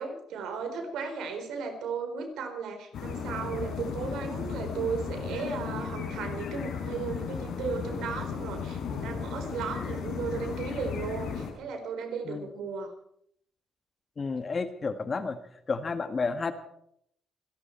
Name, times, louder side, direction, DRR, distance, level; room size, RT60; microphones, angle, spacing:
voice 1, 0.0-12.9, right 5 dB, 85° right, 5 dB, 4.1 m, -35 dB
sound 1, 2.9-11.5, left 6 dB, 75° left, 5.0 m, -35 dB
voice 2, 14.2-15.4 15.7-16.5, left 4 dB, 35° left, 9 dB, 1.7 m, -31 dB
27.5 x 11.5 x 4.5 m, 0.70 s
cardioid pair, 90°, 0 cm